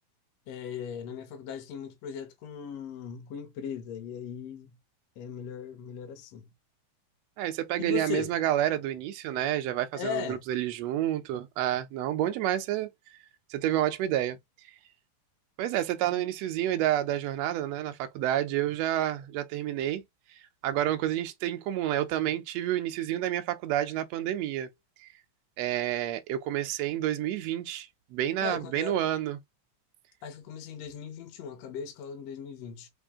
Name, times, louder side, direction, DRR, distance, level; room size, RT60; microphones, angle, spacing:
voice 1, 0.5-4.8 5.2-6.5 7.8-8.4 9.9-10.4 16.1-16.2 28.4-29.0 30.2-32.9, left 7 dB, 70° left, 1.7 m, -38 dB
voice 2, 7.4-12.9 13.5-14.7 15.6-20.0 20.3-24.7 25.0-25.1 25.6-29.4, right 12 dB, 80° right, 1.5 m, -29 dB
5.2 x 2.6 x 3.5 m
omnidirectional pair, 3.7 m